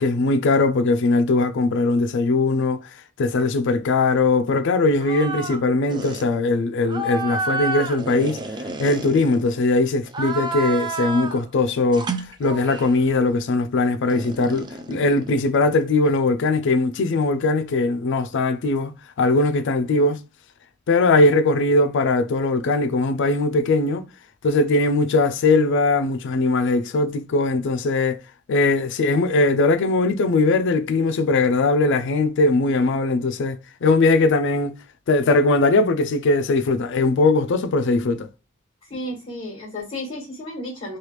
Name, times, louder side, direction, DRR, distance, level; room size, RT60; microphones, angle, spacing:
voice 1, 0.0-2.9 3.2-8.4 8.8-12.1 12.4-18.9 19.2-20.2 20.9-24.0 24.4-28.2 28.5-34.8 35.1-38.3, left 3 dB, 60° left, 0.4 m, -20 dB
sound 1, 5.0-5.6 5.9-6.3 6.9-9.6 10.1-11.4 11.9-13.0 14.1-15.9, right 3 dB, 20° right, 0.4 m, -30 dB
voice 2, 38.9-41.0, left 1 dB, 25° left, 1.5 m, -32 dB
3.3 x 2.3 x 3.0 m
head